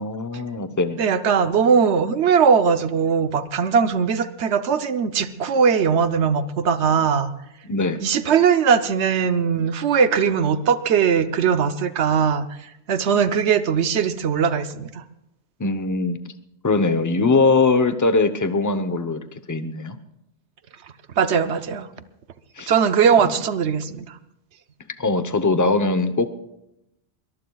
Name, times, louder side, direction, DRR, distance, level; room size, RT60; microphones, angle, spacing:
voice 1, 0.0-1.0 7.7-8.0 15.6-16.2 16.6-20.0 22.6-22.7 25.0-26.4, left 3 dB, 20° left, 10 dB, 0.7 m, -21 dB
voice 2, 1.0-7.3 8.0-12.5 12.9-15.0 21.2-21.9 22.7-24.2, right 6 dB, 90° right, 11 dB, 1.1 m, -20 dB
22.5 x 21.5 x 2.3 m, 0.85 s
omnidirectional pair, 1.1 m